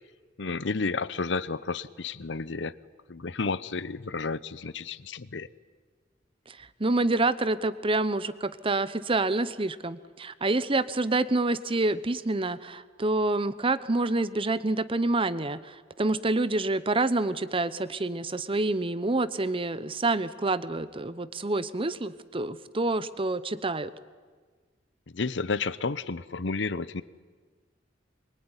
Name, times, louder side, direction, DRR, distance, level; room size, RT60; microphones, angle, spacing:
voice 1, 0.4-2.7 3.1-5.5 25.1-27.0, left 4 dB, 75° left, 17 dB, 0.8 m, -31 dB
voice 2, 6.5-23.9, right 2 dB, 30° right, 15 dB, 0.9 m, -27 dB
24.0 x 23.0 x 9.9 m, 1.5 s
head